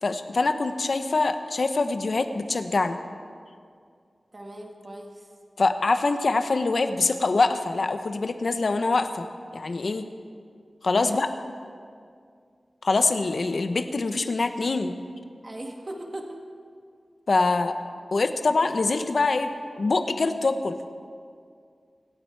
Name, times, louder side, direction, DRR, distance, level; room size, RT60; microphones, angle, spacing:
voice 1, 0.0-3.0 5.6-9.3 9.5-10.1 10.8-11.3 12.8-14.9 17.3-17.8 18.1-20.8, left 3 dB, 70° left, 8 dB, 0.9 m, -24 dB
voice 2, 4.3-5.3 10.9-11.2 15.4-16.4, right 1 dB, 40° right, 2 dB, 1.7 m, -38 dB
26.5 x 8.9 x 4.7 m, 2.2 s
wide cardioid pair, 80°, 0 cm